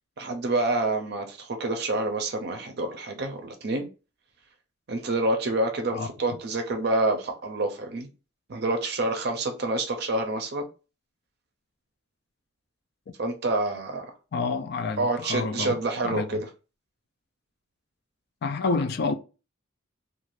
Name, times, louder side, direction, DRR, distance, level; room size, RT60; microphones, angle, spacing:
voice 1, 0.2-3.9 4.9-8.1 8.5-10.7 13.2-14.1 15.0-16.5, right 2 dB, 55° right, 0.5 m, -27 dB
voice 2, 14.3-15.8 16.0-16.3 18.4-19.1, left 4 dB, 55° left, 0.4 m, -28 dB
2.4 x 2.3 x 3.1 m
head